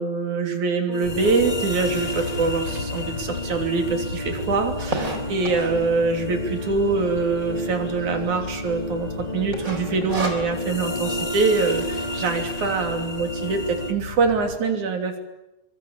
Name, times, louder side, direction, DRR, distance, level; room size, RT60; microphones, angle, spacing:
voice 1, 0.0-15.2, right 4 dB, 75° right, 4 dB, 4.5 m, -24 dB
sound 1, 0.9-13.9, equal, 20° left, 1.0 m, -31 dB
sound 2, 1.0-14.6, left 4 dB, 70° left, 4.8 m, -36 dB
sound 3, 2.4-2.5 3.1-3.2 3.4-3.5 3.7-5.9 6.5-6.9 7.3-7.4 7.6-7.7 8.2-8.6 8.9-9.1 9.5-10.8, right 2 dB, 25° right, 4.1 m, -30 dB
24.5 x 24.0 x 8.8 m, 0.94 s
omnidirectional pair, 3.4 m